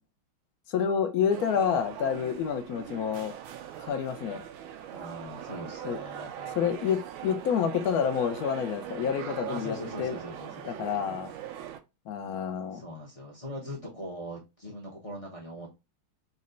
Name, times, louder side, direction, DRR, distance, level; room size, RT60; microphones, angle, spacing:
voice 1, 0.7-3.3 3.8-4.4 5.8-6.0 6.6-10.2 10.6-11.3 12.1-12.8, left 7 dB, 65° left, 0.9 m, -28 dB
sound 1, 1.3-11.8, right 10 dB, 80° right, 1.4 m, -41 dB
voice 2, 4.9-6.6 7.3-7.4 9.5-10.6 11.0-11.3 12.7-15.7, equal, 35° left, 0.6 m, -41 dB
4.1 x 2.2 x 3.7 m
omnidirectional pair, 2.2 m